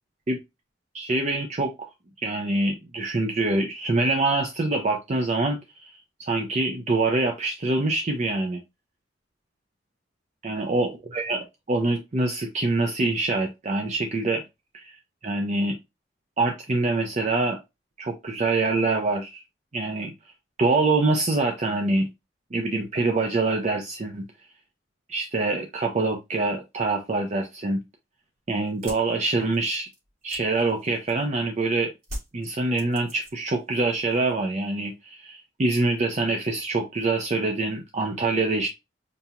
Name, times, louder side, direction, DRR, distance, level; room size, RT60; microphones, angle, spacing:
voice 1, 0.9-1.9 2.2-5.9 6.2-8.6 10.4-14.4 14.7-14.9 15.2-15.8 16.4-17.6 18.0-19.4 19.7-20.1 20.6-22.1 22.5-24.2 25.1-27.8 28.5-29.9 30.2-31.9 32.3-38.7, right 2 dB, 40° right, 0.5 m, -25 dB
sound 1, 28.7-31.4 32.0-33.6 33.9-34.4, equal, 55° right, 2.8 m, -41 dB
5.3 x 2.8 x 2.3 m
head